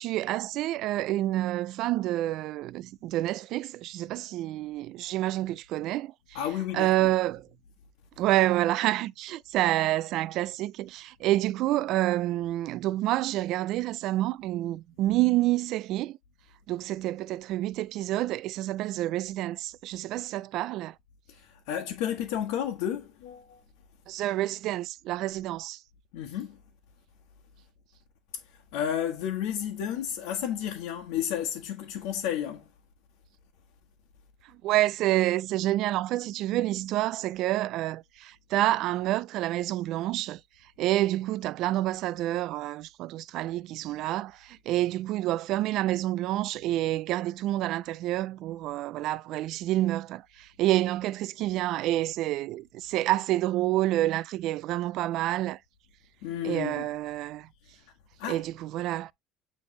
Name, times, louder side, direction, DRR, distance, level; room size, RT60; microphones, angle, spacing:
voice 1, 0.0-6.4 6.7-7.5 8.2-16.2 16.7-20.9 24.1-25.8 34.4-40.4 40.8-55.6 56.4-57.5 58.3-59.1, right 15 dB, 50° right, 0.3 m, -28 dB
voice 2, 6.3-7.1 21.3-23.6 26.1-26.6 28.4-32.7 56.2-56.8 58.2-58.4, left 10 dB, 85° left, 1.3 m, -32 dB
9.4 x 3.4 x 3.2 m
cardioid pair, 170°, 0 cm